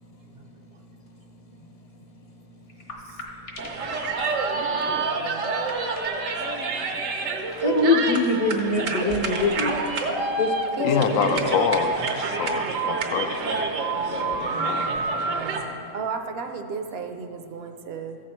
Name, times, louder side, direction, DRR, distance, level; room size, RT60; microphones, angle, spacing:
sound 1, 2.7-8.9, left 2 dB, 65° left, 1.6 m, -45 dB
sound 2, 3.6-15.6, right 3 dB, 85° right, 1.3 m, -27 dB
voice 1, 4.5-5.5 10.8-11.5 15.3-18.2, right 5 dB, 60° right, 6 dB, 0.8 m, -35 dB
voice 2, 7.6-9.7 10.4-10.5 10.8-11.5 14.1-14.4, left 3 dB, 35° left, 4 dB, 0.7 m, -24 dB
voice 3, 10.8-13.7 14.6-14.9, left 7 dB, 85° left, 9 dB, 1.0 m, -26 dB
14.5 x 6.2 x 4.4 m, 2.6 s
omnidirectional pair, 1.3 m